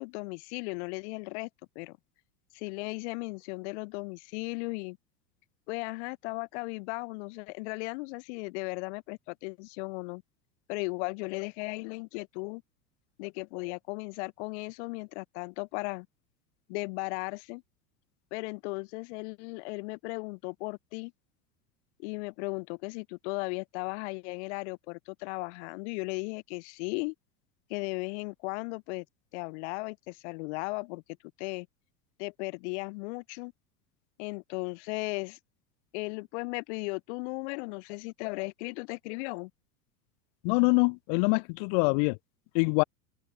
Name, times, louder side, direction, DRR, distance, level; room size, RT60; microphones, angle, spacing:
voice 1, 0.0-1.5 1.7-2.0 2.5-5.0 5.7-10.2 10.7-12.6 13.2-16.1 16.7-17.6 18.3-21.1 22.0-27.1 27.7-29.0 29.3-31.0 31.4-31.7 32.2-33.5 34.2-35.4 35.9-39.5, left 29 dB, 45° left, 1.1 m, -36 dB
voice 2, 40.4-42.2 42.5-42.8, left 39 dB, 25° left, 0.4 m, -24 dB
figure-of-eight pair, 80°, 49 cm